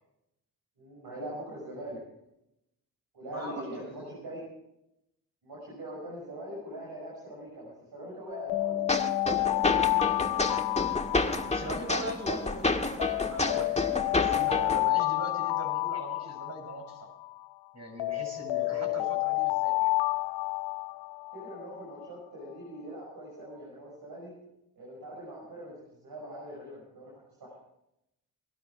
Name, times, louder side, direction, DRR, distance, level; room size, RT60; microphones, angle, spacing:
voice 1, 0.8-2.0 3.1-4.4 5.4-10.6 18.7-18.9 21.3-24.3 24.8-27.1 27.4-27.6, right 1 dB, 65° right, -3 dB, 6.1 m, -42 dB
voice 2, 3.3-4.1 11.5-17.1 17.7-19.9, right 1 dB, 40° right, 3 dB, 6.8 m, -41 dB
Alarm, 8.3-12.5 13.0-17.5 18.0-21.8, left 21 dB, 80° left, 0.5 m, -30 dB
Bass guitar, 8.5-14.8, equal, 30° left, 4.7 m, -46 dB
sound 1, 8.9-14.9, left 2 dB, 15° left, 1.8 m, -29 dB
19.5 x 12.5 x 4.8 m, 0.83 s
supercardioid pair, 45°, 41 cm